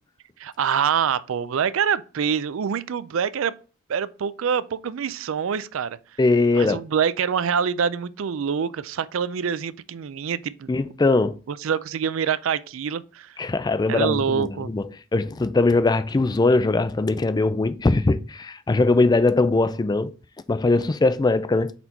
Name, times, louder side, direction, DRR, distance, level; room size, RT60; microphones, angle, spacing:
voice 1, 0.4-3.5 3.9-6.0 6.5-10.7 11.5-13.3 13.9-14.7, right 7 dB, 65° right, 0.4 m, -25 dB
voice 2, 6.2-6.8 10.7-11.4 13.4-20.1 20.5-21.7, left 3 dB, 20° left, 0.3 m, -21 dB
4.4 x 4.2 x 5.2 m
head